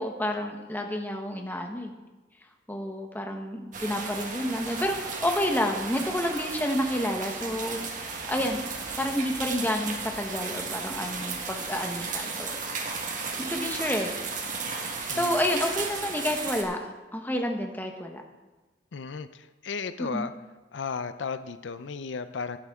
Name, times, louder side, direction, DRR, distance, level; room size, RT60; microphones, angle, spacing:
voice 1, 0.0-1.9 2.7-8.6 9.0-12.6 13.4-14.1 15.1-18.2 20.0-20.3, left 1 dB, 10° left, 3 dB, 1.1 m, -30 dB
sound 1, 3.7-16.6, right 4 dB, 45° right, 1.6 m, -34 dB
voice 2, 18.9-20.3 20.7-22.6, left 5 dB, 85° left, 12 dB, 0.5 m, -34 dB
12.5 x 11.0 x 3.7 m, 1.2 s
head